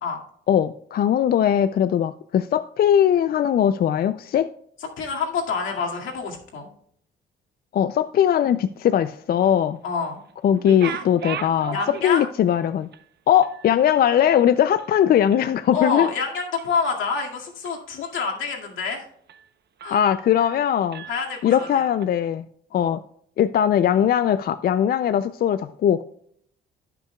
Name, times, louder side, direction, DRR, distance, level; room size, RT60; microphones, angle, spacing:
voice 1, 0.5-4.5 7.7-9.8 10.4-11.8 12.0-12.9 13.3-16.1 19.9-21.0 21.4-22.4 22.7-23.0 23.4-26.0, left 9 dB, 50° left, 13 dB, 0.4 m, -20 dB
voice 2, 5.0-6.7 9.8-10.2 10.8-11.0 11.7-12.3 15.7-19.1 19.8-20.0 21.1-21.9 22.7-22.9, left 5 dB, 80° left, 0 dB, 2.1 m, -27 dB
sound 1, 10.5-12.6 12.9-13.0 13.4-15.6 15.9-16.2 16.6-17.2 17.7-18.4 18.8-18.9 19.3-19.5 19.8-20.6 20.9-22.1, right 9 dB, 55° right, 0.7 m, -38 dB
15.5 x 5.9 x 2.3 m, 0.66 s
cardioid pair, 90°, 20 cm